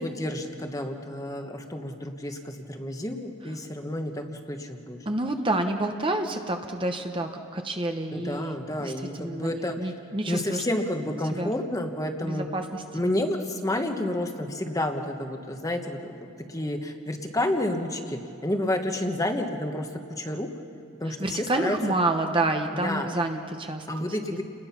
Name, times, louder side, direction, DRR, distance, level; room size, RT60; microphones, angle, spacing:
voice 1, 0.0-5.0 8.1-9.9 10.3-12.5 12.9-20.5 21.0-21.8 22.7-23.1 23.9-24.4, left 1 dB, 15° left, 5 dB, 1.2 m, -30 dB
voice 2, 5.1-10.6 11.3-11.5 12.2-12.8 21.2-23.9, right 2 dB, 25° right, 5 dB, 0.9 m, -28 dB
30.0 x 20.5 x 5.9 m, 2.6 s
head